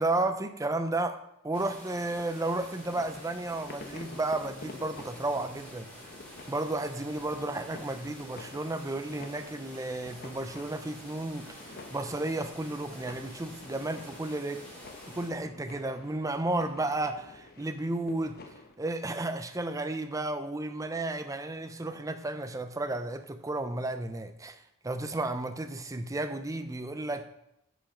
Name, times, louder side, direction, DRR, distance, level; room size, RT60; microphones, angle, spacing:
voice 1, 0.0-5.9 6.5-14.6 15.1-18.4 18.8-24.6 24.8-27.2, right 2 dB, 15° right, 9 dB, 0.5 m, -33 dB
sound 1, 1.5-15.3, equal, 5° left, 2.7 m, -49 dB
sound 2, 2.6-18.7, left 3 dB, 45° left, 0.9 m, -50 dB
8.8 x 5.1 x 5.9 m, 0.83 s
head